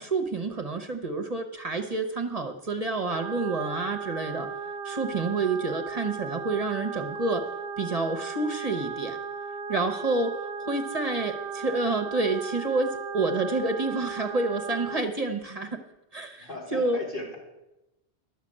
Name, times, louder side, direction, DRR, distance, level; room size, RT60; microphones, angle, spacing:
voice 1, 0.0-4.5 4.8-7.5 7.8-9.2 9.7-10.3 10.6-15.8 16.1-17.0, right 3 dB, 35° right, 5 dB, 0.9 m, -28 dB
sound 1, 3.1-15.0, right 6 dB, 65° right, 0.8 m, -36 dB
voice 2, 16.4-17.4, left 2 dB, 50° left, -3 dB, 3.5 m, -38 dB
12.0 x 6.6 x 8.6 m, 0.95 s
omnidirectional pair, 1.1 m